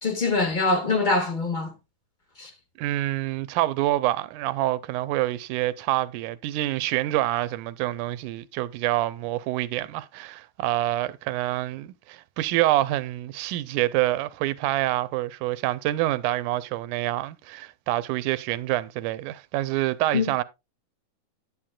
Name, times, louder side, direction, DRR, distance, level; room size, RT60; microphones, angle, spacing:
voice 1, 0.0-1.7 2.4-2.5 20.1-20.3, left 3 dB, 25° left, 0.9 m, -24 dB
voice 2, 2.8-20.4, right 15 dB, 90° right, 2.1 m, -26 dB
10.0 x 9.3 x 2.2 m
omnidirectional pair, 3.5 m